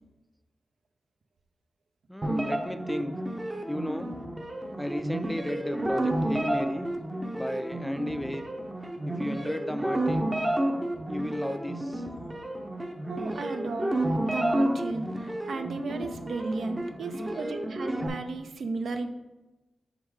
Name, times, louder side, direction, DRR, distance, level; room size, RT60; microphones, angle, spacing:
voice 1, 2.1-3.2 3.7-4.2 4.8-6.9 7.4-8.4 9.1-10.4 11.1-12.0, left 1 dB, 5° left, 10 dB, 0.3 m, -34 dB
sound 1, 2.2-18.1, right 1 dB, 20° right, 0.7 m, -31 dB
voice 2, 13.1-19.1, right 3 dB, 75° right, 7 dB, 0.5 m, -34 dB
6.1 x 3.7 x 4.7 m, 1.1 s
wide cardioid pair, 100°, 0 cm